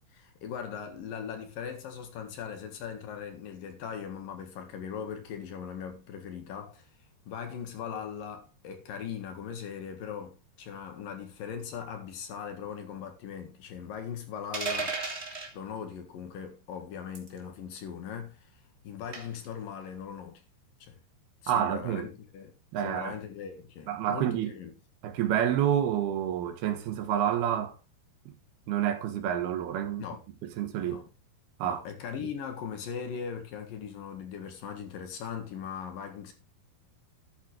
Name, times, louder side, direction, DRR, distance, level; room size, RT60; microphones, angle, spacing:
voice 1, 0.1-6.9 7.3-15.0 15.5-18.5 18.8-20.4 20.8-21.0 21.4-22.5 22.8-24.7 30.0-30.2 30.8-31.1 31.6-36.3, left 7 dB, 65° left, 3.0 m, -39 dB
sound 1, 14.5-15.5 17.1-17.4 19.1-19.5, right 4 dB, 25° right, 1.8 m, -33 dB
voice 2, 21.5-22.1 22.7-23.1 23.9-24.5 25.0-27.7 28.3-28.4 28.7-30.1 30.6-31.0 31.6-31.8, right 10 dB, 75° right, 3.2 m, -28 dB
12.5 x 9.2 x 3.3 m
omnidirectional pair, 4.7 m